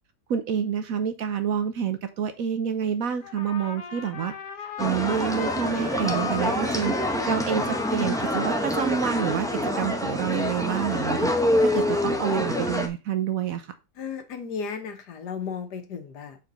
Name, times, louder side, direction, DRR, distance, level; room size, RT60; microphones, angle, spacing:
voice 1, 0.3-4.3 4.6-6.9 7.3-11.3 11.6-13.7, right 8 dB, 65° right, 1.1 m, -28 dB
Trumpet, 3.2-10.0, left 6 dB, 65° left, 1.5 m, -38 dB
sound 1, 4.8-12.9, left 1 dB, 5° left, 0.4 m, -26 dB
voice 2, 14.0-16.4, left 6 dB, 80° left, 1.7 m, -34 dB
5.1 x 4.5 x 5.3 m
omnidirectional pair, 1.7 m